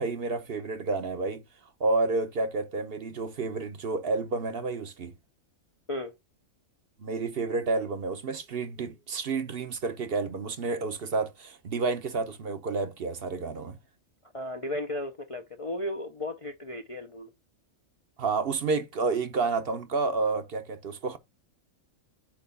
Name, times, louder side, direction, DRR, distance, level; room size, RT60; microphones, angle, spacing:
voice 1, 0.0-1.4 1.8-5.1 7.0-13.8 18.2-21.2, right 3 dB, 50° right, 0.9 m, -30 dB
voice 2, 14.3-17.3, left 1 dB, 35° left, 0.5 m, -35 dB
8.5 x 3.0 x 5.7 m
omnidirectional pair, 1.4 m